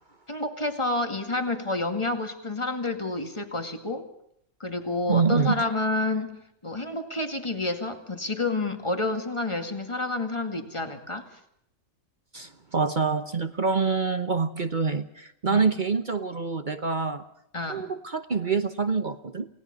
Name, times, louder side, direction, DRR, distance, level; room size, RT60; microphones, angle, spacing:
voice 1, 0.3-4.1 4.6-11.3 15.5-15.7 17.5-17.9, left 2 dB, 20° left, 7 dB, 2.2 m, -29 dB
voice 2, 5.1-5.6 12.3-17.2 17.7-19.5, right 5 dB, 40° right, 10 dB, 1.1 m, -26 dB
29.0 x 18.5 x 5.2 m, 0.73 s
omnidirectional pair, 1.4 m